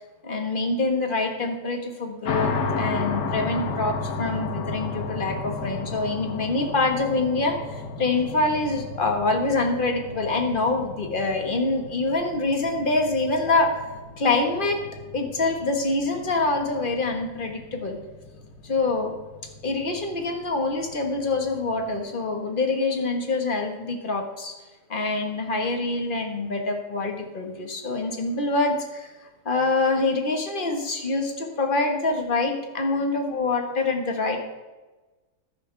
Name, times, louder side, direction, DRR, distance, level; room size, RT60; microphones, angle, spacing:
voice 1, 0.2-13.7 14.2-14.8 15.1-18.0 18.6-19.1 19.6-24.5 24.9-29.1 29.4-34.4, left 3 dB, 30° left, 3 dB, 1.7 m, -25 dB
sound 1, 2.2-22.0, left 3 dB, 75° left, 1.7 m, -34 dB
14.5 x 10.5 x 3.5 m, 1.2 s
omnidirectional pair, 1.9 m